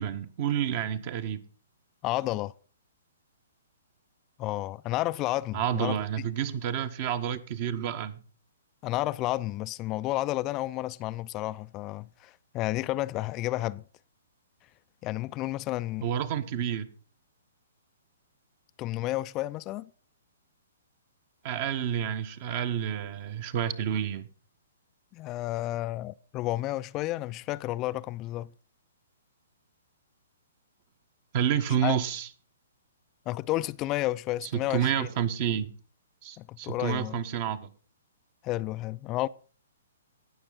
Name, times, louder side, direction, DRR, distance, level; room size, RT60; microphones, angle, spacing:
voice 1, 0.0-1.4 5.5-8.2 16.0-16.9 21.4-24.3 31.3-32.3 34.4-35.7 36.2-37.7, right 9 dB, 45° right, 1.2 m, -29 dB
voice 2, 2.0-2.5 4.4-6.0 8.8-13.8 15.0-16.1 18.8-19.9 25.1-28.5 31.8-32.0 33.3-35.1 36.4-37.2 38.4-39.3, left 17 dB, 30° left, 0.4 m, -31 dB
18.0 x 6.4 x 3.9 m
figure-of-eight pair, 125°, 0 cm